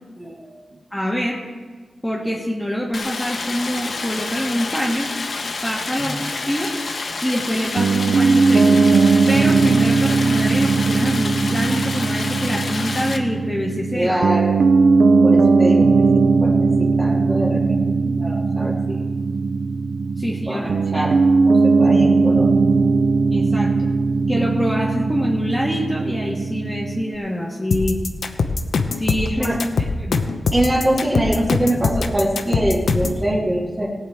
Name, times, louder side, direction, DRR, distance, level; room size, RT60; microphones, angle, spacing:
voice 1, 0.2-0.6 6.0-6.2 13.9-14.6 15.2-17.8 18.0-19.1 20.3-21.2 21.5-22.5 22.8-22.9 29.4-29.6 30.5-33.9, right 1 dB, 20° right, -2 dB, 2.2 m, -24 dB
voice 2, 0.9-1.4 2.0-5.1 5.6-6.2 6.5-6.7 7.2-8.8 9.3-14.2 20.2-21.1 23.3-23.7 24.3-28.0 28.9-29.5 30.0-30.2, equal, 5° left, -3 dB, 1.5 m, -25 dB
Stream, 2.9-13.2, left 3 dB, 60° left, 1.0 m, -29 dB
Piano, 7.8-27.2, right 4 dB, 75° right, 0.4 m, -18 dB
sound 1, 27.7-33.2, left 4 dB, 90° left, 0.8 m, -22 dB
18.0 x 8.3 x 4.5 m, 1.4 s
wide cardioid pair, 110°, 0 cm